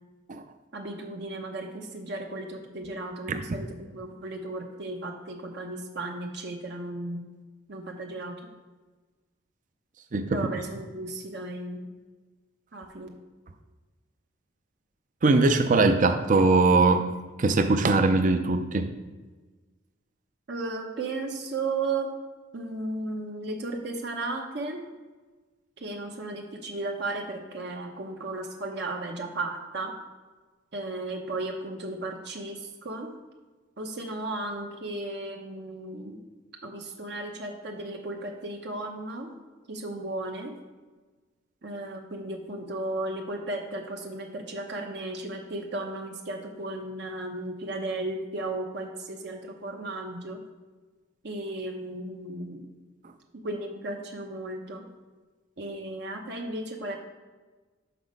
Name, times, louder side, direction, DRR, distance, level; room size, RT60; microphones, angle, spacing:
voice 1, 0.7-7.2 7.7-8.4 10.3-11.8 12.7-13.1 20.5-22.1 22.5-24.8 25.8-29.9 30.7-33.1 33.8-36.3 36.6-39.3 39.7-40.5 41.6-50.4 51.2-52.6 53.3-54.8 55.6-57.0, right 2 dB, 60° right, 2 dB, 0.8 m, -35 dB
voice 2, 10.1-10.4 15.2-17.1 17.4-18.9, right 3 dB, 40° right, 8 dB, 0.5 m, -21 dB
6.0 x 6.0 x 5.3 m, 1.3 s
head